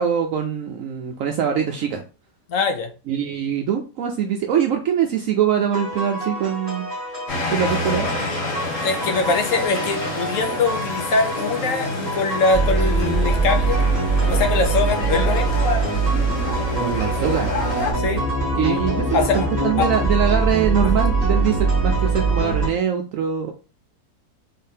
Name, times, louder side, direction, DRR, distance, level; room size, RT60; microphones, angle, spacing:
voice 1, 0.0-2.0 3.1-6.9 7.5-8.1 16.8-17.6 18.4-23.5, right 8 dB, 70° right, 3 dB, 0.9 m, -23 dB
voice 2, 2.5-2.9 8.8-13.8 14.3-15.6 18.0-18.2 19.1-19.5 19.8-19.9, left 4 dB, 65° left, 5 dB, 1.0 m, -22 dB
sound 1, 5.7-22.7, right 3 dB, 30° left, 2.1 m, -23 dB
sound 2, 7.3-17.9, left 2 dB, 45° left, 1.4 m, -29 dB
3.9 x 3.6 x 2.7 m, 0.34 s
omnidirectional pair, 1.6 m